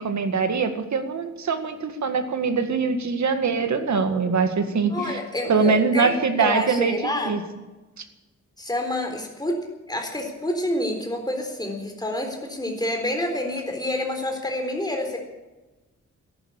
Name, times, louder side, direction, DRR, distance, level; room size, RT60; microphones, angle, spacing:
voice 1, 0.0-5.2 5.5-7.4, right 5 dB, 70° right, 7 dB, 2.0 m, -23 dB
voice 2, 4.9-7.3 8.6-9.6 9.9-15.2, left 1 dB, 15° left, 3 dB, 4.0 m, -28 dB
14.0 x 11.5 x 8.9 m, 1.1 s
wide cardioid pair, 130°, 30 cm